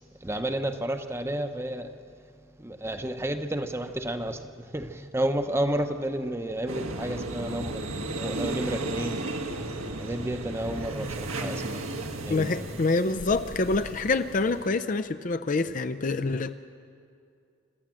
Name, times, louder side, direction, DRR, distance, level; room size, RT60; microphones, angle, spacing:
voice 1, 0.2-1.9 2.6-4.5 4.7-9.2 10.0-11.9 12.2-12.5, right 1 dB, 10° right, 8 dB, 0.8 m, -31 dB
sound 1, 6.7-14.7, right 2 dB, 85° right, 1.6 m, -34 dB
voice 2, 12.3-16.5, left 3 dB, 40° left, 10 dB, 0.4 m, -26 dB
26.5 x 13.5 x 7.6 m, 2.4 s
head